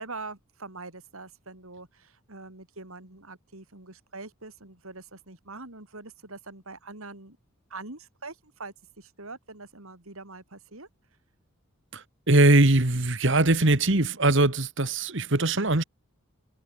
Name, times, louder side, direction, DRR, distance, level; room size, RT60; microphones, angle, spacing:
voice 1, 0.0-7.4 7.7-10.9, right 3 dB, 75° right, 4.2 m, -43 dB
voice 2, 11.9-15.8, right 2 dB, 55° right, 1.8 m, -21 dB
head